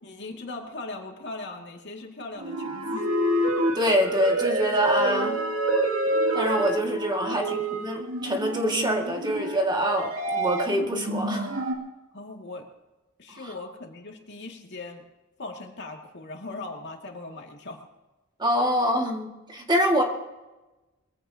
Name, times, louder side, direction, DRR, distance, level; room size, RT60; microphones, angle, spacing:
voice 1, 0.0-3.1 4.6-4.9 7.1-7.6 12.1-12.7 13.2-15.0 15.4-17.8 18.6-18.7, left 2 dB, 55° left, 1 dB, 2.3 m, -39 dB
sound 1, 2.4-11.7, right 1 dB, 85° right, 2.5 m, -27 dB
voice 2, 3.7-5.4 6.3-11.5 13.3-13.5 18.4-20.0, equal, 20° right, 1 dB, 2.1 m, -25 dB
22.5 x 15.5 x 2.9 m, 1.1 s
head